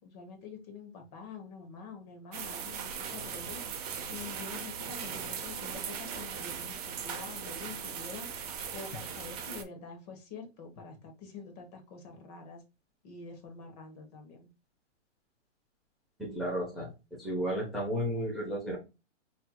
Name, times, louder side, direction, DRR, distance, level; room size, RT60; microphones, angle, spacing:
voice 1, 0.0-3.6 4.1-8.3 8.7-12.6 13.0-14.5, left 5 dB, 35° left, 4 dB, 1.1 m, -46 dB
sound 1, 2.3-9.6, right 7 dB, 35° right, 0.6 m, -39 dB
voice 2, 16.2-18.8, equal, ahead, -5 dB, 0.8 m, -33 dB
5.4 x 3.0 x 2.2 m, 0.28 s
hypercardioid pair, 155°, 36 cm